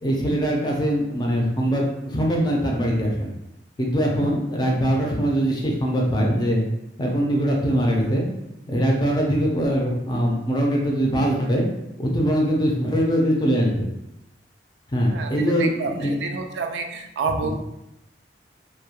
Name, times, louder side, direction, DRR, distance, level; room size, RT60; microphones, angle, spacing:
voice 1, 0.0-3.3 3.8-6.6 7.0-8.2 8.7-11.6 12.0-13.9 14.9-16.2 17.4-17.5, equal, 25° left, -1 dB, 0.4 m, -22 dB
voice 2, 15.1-17.5, right 4 dB, 85° right, 5 dB, 0.3 m, -29 dB
2.2 x 2.2 x 2.8 m, 0.87 s
head